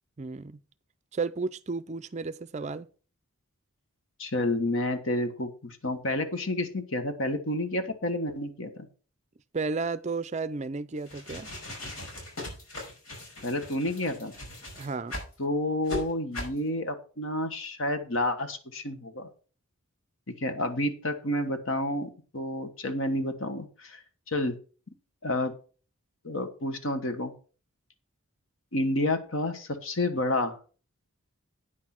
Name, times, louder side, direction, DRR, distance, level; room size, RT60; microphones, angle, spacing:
voice 1, 0.2-0.6 1.1-2.9 9.5-11.5 14.8-15.2, right 4 dB, 30° right, 0.4 m, -33 dB
voice 2, 4.2-8.9 13.4-14.3 15.4-19.3 20.3-24.0 24.3-24.6 25.2-25.5 26.2-27.3 28.7-30.6, left 1 dB, 65° left, 1.4 m, -30 dB
sound 1, 11.0-15.3 15.8-16.0 16.3-16.6, left 1 dB, 80° left, 5.5 m, -39 dB
9.4 x 6.2 x 5.9 m
head